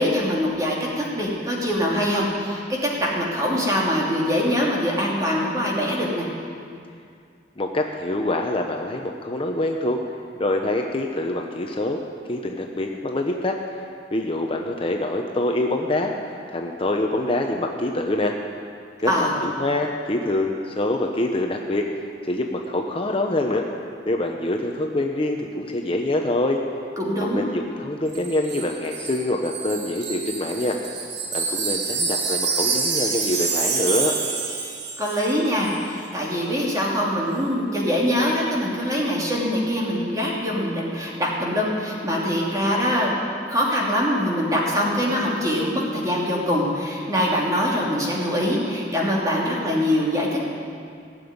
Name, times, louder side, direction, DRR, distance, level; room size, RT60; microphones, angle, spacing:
voice 1, 0.0-6.3 19.1-19.4 27.0-27.4 35.0-43.2 43.5-50.5, equal, 20° right, -4 dB, 2.9 m, -23 dB
voice 2, 7.6-10.0 10.4-12.0 12.3-13.6 14.1-18.3 19.0-21.9 22.2-23.6 24.0-26.6 27.2-30.8 31.3-34.1, left 1 dB, 30° left, 2 dB, 0.8 m, -25 dB
Wind chime, 28.1-35.4 35.6-35.8, right 5 dB, 85° right, 2.0 m, -27 dB
16.5 x 7.1 x 9.6 m, 2.3 s
head